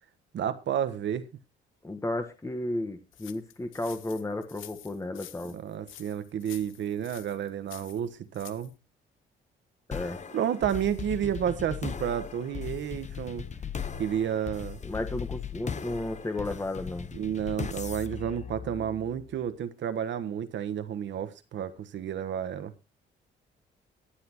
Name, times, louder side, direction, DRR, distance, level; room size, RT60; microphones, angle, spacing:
voice 1, 0.3-1.3 5.5-8.7 10.3-13.5 14.0-14.8 17.1-22.7, right 9 dB, 65° right, 11 dB, 1.3 m, -31 dB
voice 2, 1.8-5.6 9.9-10.2 14.8-17.1, left 2 dB, 15° left, 6 dB, 1.4 m, -33 dB
sound 1, 3.1-8.7, left 12 dB, 80° left, 1.0 m, -49 dB
sound 2, 9.9-19.3, left 7 dB, 35° left, 1.1 m, -38 dB
23.0 x 7.8 x 3.0 m, 0.27 s
cardioid pair, 90°, 20 cm